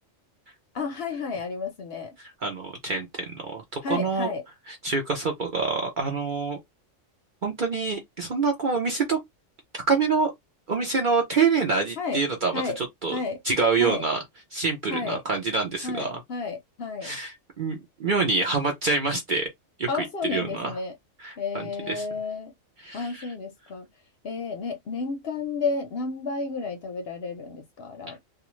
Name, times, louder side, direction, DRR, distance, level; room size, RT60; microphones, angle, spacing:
voice 1, 0.7-2.1 3.8-4.4 12.0-12.2 12.5-12.8 13.1-13.4 13.8-14.0 14.9-15.2 15.8-17.1 19.9-20.9 21.4-22.5 22.9-23.9 24.2-28.2, left 4 dB, 60° left, 0.7 m, -31 dB
voice 2, 2.2-4.3 4.7-6.6 7.4-9.2 9.7-10.3 10.7-13.2 13.4-14.2 14.5-16.2 17.0-19.5 19.8-20.8 21.2-22.0 22.8-23.3, right 4 dB, 50° right, 0.6 m, -26 dB
2.4 x 2.3 x 3.0 m
omnidirectional pair, 1.4 m